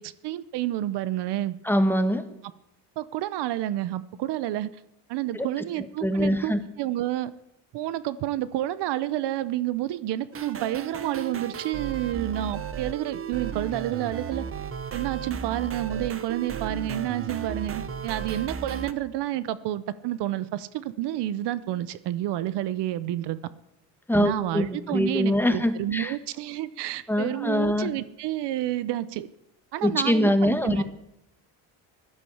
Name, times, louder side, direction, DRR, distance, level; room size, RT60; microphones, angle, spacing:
voice 1, 0.0-1.6 3.0-4.7 5.1-7.3 7.7-14.4 14.9-23.4 24.1-29.3 29.7-30.8, right 13 dB, 70° right, 16 dB, 0.9 m, -29 dB
voice 2, 1.6-2.2 5.3-5.5 6.0-6.6 24.1-26.1 27.1-27.9 29.8-30.8, equal, 5° left, 8 dB, 1.3 m, -23 dB
sound 1, 10.3-18.9, right 7 dB, 30° right, 1.1 m, -34 dB
15.5 x 12.0 x 7.2 m, 0.81 s
cardioid pair, 125°, 42 cm